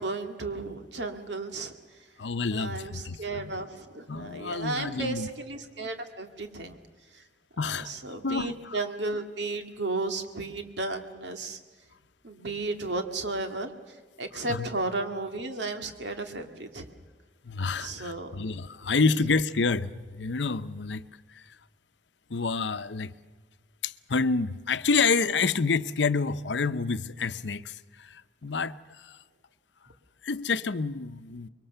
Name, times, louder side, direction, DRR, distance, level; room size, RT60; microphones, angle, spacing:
voice 1, 0.0-1.7 2.5-6.8 7.6-11.6 12.2-13.7 14.2-17.0 17.8-18.4, right 2 dB, 75° right, 2.2 m, -34 dB
voice 2, 2.2-3.6 4.1-5.3 7.6-7.9 8.2-8.8 14.3-14.7 17.4-21.0 21.3-21.4 22.3-23.1 23.8-28.7 29.0-29.2 30.2-31.5, left 4 dB, 80° left, 0.8 m, -28 dB
25.0 x 23.0 x 6.8 m
head